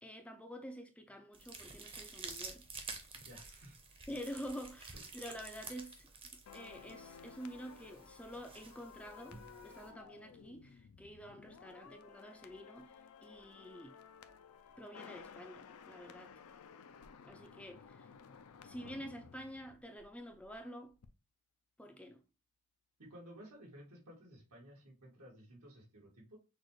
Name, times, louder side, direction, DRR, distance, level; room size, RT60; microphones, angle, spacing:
voice 1, 0.0-2.6 4.1-6.1 6.5-14.0 14.8-16.4 17.2-18.1 18.6-20.9 21.8-22.2, equal, 5° left, 0.4 m, -48 dB
sound 1, 1.3-9.9, right 4 dB, 25° right, 0.8 m, -51 dB
voice 2, 3.2-3.8 23.0-26.4, equal, 85° right, 2.0 m, -55 dB
sound 2, 6.5-20.6 20.9-21.1, left 6 dB, 75° left, 0.5 m, -56 dB
6.2 x 2.4 x 3.1 m
head